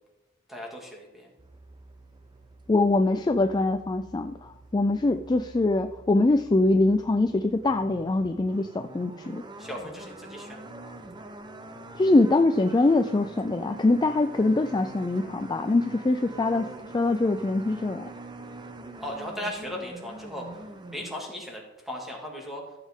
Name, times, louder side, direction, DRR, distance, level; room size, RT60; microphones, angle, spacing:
voice 1, 0.5-1.3 9.6-11.0 19.0-20.6 20.9-22.6, equal, ahead, -2 dB, 2.2 m, -37 dB
sound 1, 1.4-21.1, right 2 dB, 20° right, 0.7 m, -45 dB
voice 2, 2.7-9.4 12.0-18.1, left 2 dB, 20° left, 8 dB, 0.3 m, -23 dB
14.5 x 7.3 x 3.7 m, 1.1 s
head